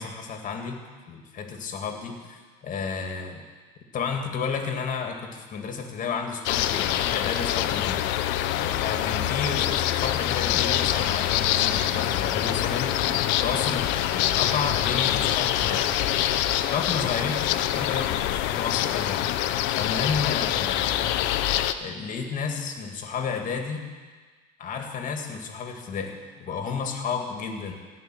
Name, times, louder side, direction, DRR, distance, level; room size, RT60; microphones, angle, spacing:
voice 1, 0.0-3.4 3.9-8.0 8.6-15.9 16.7-17.4 17.7-19.3 19.7-21.1 21.8-23.9 24.6-27.7, left 5 dB, 40° left, 4 dB, 2.2 m, -32 dB
sound 1, 6.5-21.7, left 12 dB, 65° left, 0.7 m, -25 dB
16.5 x 5.5 x 9.3 m, 1.4 s
supercardioid pair, 110°, 20 cm